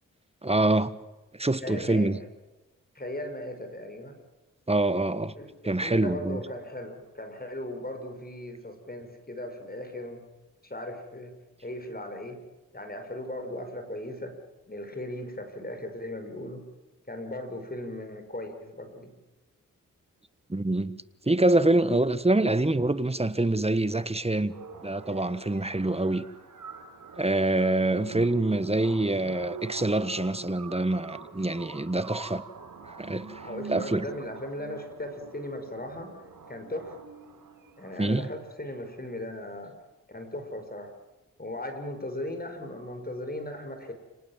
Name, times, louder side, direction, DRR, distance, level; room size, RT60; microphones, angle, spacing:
voice 1, 0.4-0.9 1.3-2.2 4.7-5.3 5.6-6.4 20.5-21.0 21.3-24.5 24.8-26.3 27.2-32.4 32.9-33.4 33.7-34.1 38.0-38.3, right 2 dB, 20° right, 1.5 m, -25 dB
voice 2, 1.6-2.1 2.9-4.2 5.4-10.2 10.6-11.3 11.6-12.4 12.7-14.4 14.7-16.6 17.1-19.1 33.4-36.9 37.8-39.7 40.1-40.9 41.4-43.9, left 1 dB, 30° left, 6.2 m, -37 dB
sound 1, 24.5-38.5, right 5 dB, 75° right, 3.9 m, -45 dB
29.5 x 19.0 x 7.6 m
cardioid pair, 45°, 32 cm